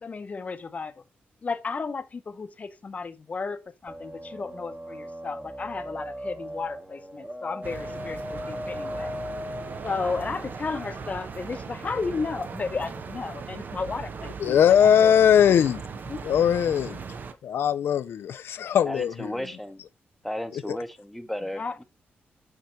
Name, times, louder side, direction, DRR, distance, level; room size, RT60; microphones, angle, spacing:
voice 1, 0.0-0.9 1.4-9.1 9.8-15.1 16.1-16.3 21.5-21.8, left 4 dB, 40° left, 0.8 m, -33 dB
sound 1, 3.9-13.1, left 1 dB, 15° right, 1.2 m, -39 dB
sound 2, 7.6-17.3, right 5 dB, 50° right, 0.8 m, -38 dB
voice 2, 14.4-15.8 16.2-17.0 17.4-19.4 20.5-20.8, left 9 dB, 75° left, 0.4 m, -20 dB
voice 3, 18.8-19.8 20.2-21.8, left 1 dB, ahead, 1.0 m, -34 dB
6.7 x 4.9 x 4.4 m
cardioid pair, 95°, 4 cm